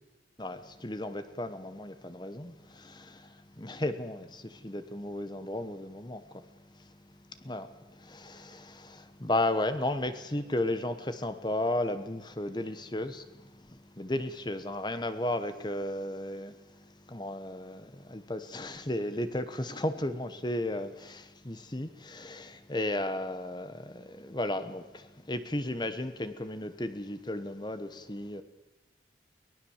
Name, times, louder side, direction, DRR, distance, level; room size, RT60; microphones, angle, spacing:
voice 1, 0.4-28.4, left 1 dB, 25° left, 1.1 m, -34 dB
23.0 x 19.0 x 7.3 m
head